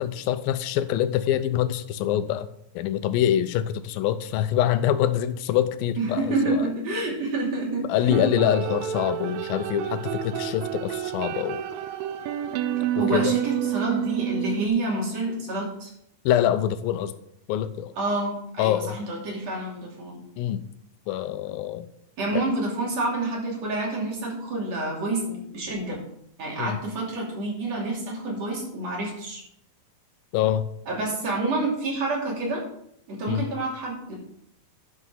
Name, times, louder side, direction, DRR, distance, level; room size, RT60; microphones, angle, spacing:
voice 1, 0.0-2.5 2.8-6.7 7.8-11.6 13.0-13.3 16.3-17.1 17.5-17.9 18.6-19.0 20.4-20.7 21.1-21.9 22.3-22.5 26.6-26.8 30.3-30.7 33.3-33.5, left 11 dB, 80° left, 12 dB, 2.4 m, -25 dB
voice 2, 6.0-8.2 13.0-15.9 18.0-20.2 22.2-26.0 26.4-29.4 30.9-32.6 33.1-34.1, right 2 dB, 45° right, -2 dB, 3.7 m, -28 dB
sound 1, 8.1-14.7, right 12 dB, 80° right, 2.3 m, -29 dB
11.0 x 6.5 x 5.6 m, 0.73 s
omnidirectional pair, 4.3 m